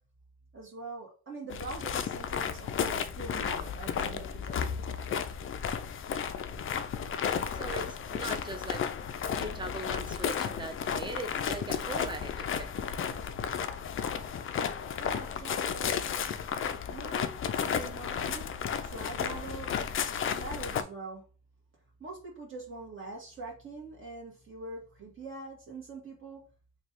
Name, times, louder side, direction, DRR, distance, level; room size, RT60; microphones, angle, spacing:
voice 1, 0.5-4.7 15.0-15.9 16.9-18.5 18.8-19.7 20.3-21.2 22.0-26.4, right 3 dB, 40° right, 1.3 m, -43 dB
sound 1, 1.5-20.8, left 7 dB, 45° left, 0.5 m, -33 dB
voice 2, 7.5-8.9 9.3-12.8, right 2 dB, 15° right, 0.7 m, -40 dB
3.2 x 2.3 x 4.3 m
cardioid pair, 90°, 30 cm